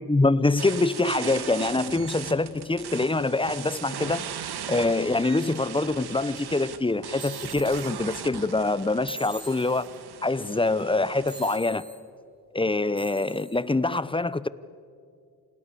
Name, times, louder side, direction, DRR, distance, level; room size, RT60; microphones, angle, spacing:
voice 1, 0.0-4.2 4.7-9.9 10.2-11.8 12.5-14.5, left 2 dB, 15° left, 17 dB, 0.9 m, -25 dB
sound 1, 0.6-11.6, right 8 dB, 80° right, 1.9 m, -38 dB
sound 2, 7.2-7.9 9.1-9.9 11.3-12.0 13.0-13.6, right 2 dB, 25° right, 4.8 m, -42 dB
29.5 x 27.5 x 6.9 m, 2.3 s
cardioid pair, 80°, 38 cm